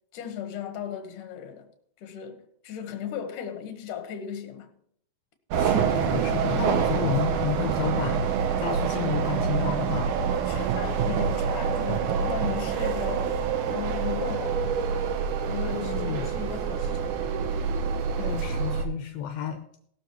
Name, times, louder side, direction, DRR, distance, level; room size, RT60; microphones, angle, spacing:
voice 1, 0.1-1.7 2.0-4.7 10.3-14.7 15.5-17.2, left 8 dB, 65° left, 2.7 m, -36 dB
sound 1, 5.5-18.8, right 6 dB, 70° right, 2.1 m, -26 dB
voice 2, 5.6-10.2 15.7-16.3 18.2-19.6, left 9 dB, 80° left, 2.6 m, -31 dB
17.5 x 12.5 x 3.1 m
omnidirectional pair, 4.4 m